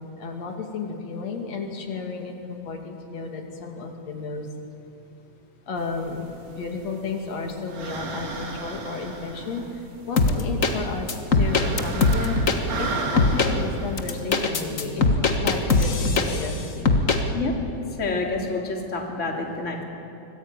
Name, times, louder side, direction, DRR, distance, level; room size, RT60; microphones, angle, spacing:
voice 1, 0.2-4.5 5.7-6.3 6.6-9.7 10.1-11.1 11.3-12.4 12.8-17.0, left 4 dB, 65° left, 2 dB, 3.7 m, -32 dB
sound 1, 5.8-15.0, right 3 dB, 65° right, 3.6 m, -36 dB
sound 2, 10.2-10.7 11.1-12.6 13.2-13.5 14.0-16.5 16.9-17.2, left 3 dB, 40° left, 1.2 m, -20 dB
voice 2, 18.0-19.8, left 3 dB, 25° left, 0 dB, 3.0 m, -28 dB
25.0 x 19.5 x 9.1 m, 2.7 s
omnidirectional pair, 3.4 m